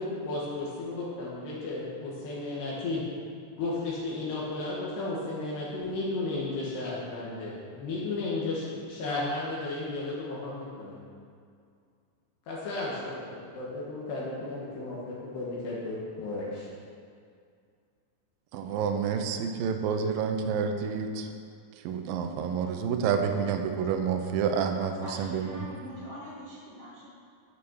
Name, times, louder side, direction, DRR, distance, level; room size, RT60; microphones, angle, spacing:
voice 1, 0.0-3.0 3.6-11.0 12.5-16.7, left 2 dB, 70° left, -6 dB, 3.5 m, -34 dB
voice 2, 18.5-21.3 21.8-25.7, right 6 dB, 85° right, 5 dB, 2.1 m, -29 dB
voice 3, 24.9-27.1, equal, 50° left, -9 dB, 0.9 m, -43 dB
9.2 x 8.6 x 6.3 m, 2.3 s
omnidirectional pair, 5.1 m